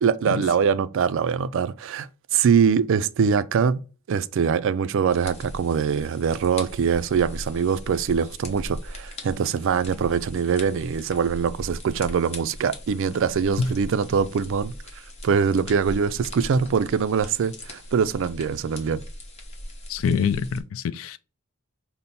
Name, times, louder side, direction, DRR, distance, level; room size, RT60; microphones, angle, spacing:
voice 1, 0.0-3.8 4.1-14.7 15.2-19.0, right 6 dB, 60° right, 0.3 m, -23 dB
sound 1, 5.1-20.6, left 1 dB, 30° left, 0.9 m, -40 dB
voice 2, 19.9-21.2, left 6 dB, 65° left, 0.3 m, -25 dB
5.2 x 2.0 x 4.1 m
head